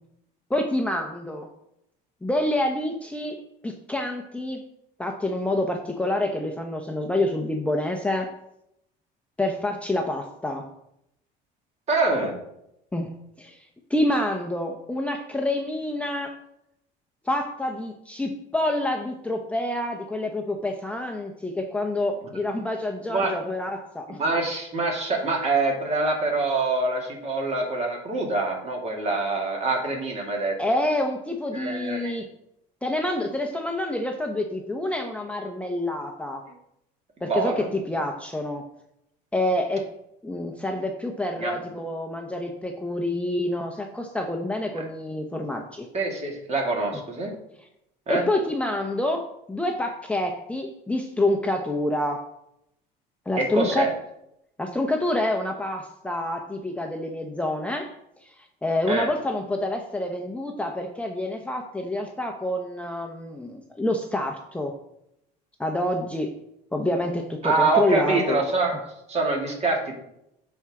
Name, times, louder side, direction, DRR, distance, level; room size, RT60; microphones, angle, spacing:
voice 1, 0.5-1.5 2.2-3.4 3.6-4.6 5.0-8.3 9.4-10.7 12.9-13.1 13.4-13.6 13.9-16.3 17.3-24.2 30.6-32.3 32.8-36.4 37.2-38.6 39.3-39.8 40.2-45.9 48.1-52.2 53.3-53.9 54.6-57.9 58.4-64.7 65.6-66.4 66.7-68.4, left 1 dB, 5° left, 2 dB, 0.8 m, -27 dB
voice 2, 11.9-12.3 23.1-23.3 24.1-30.5 31.5-32.1 37.2-37.7 41.4-41.5 44.7-44.8 45.9-47.3 48.1-48.2 53.4-53.9 58.9-59.1 67.4-68.8 69.1-69.9, right 3 dB, 35° right, 0 dB, 2.4 m, -25 dB
11.5 x 4.5 x 3.7 m, 0.80 s
cardioid pair, 115°, 18 cm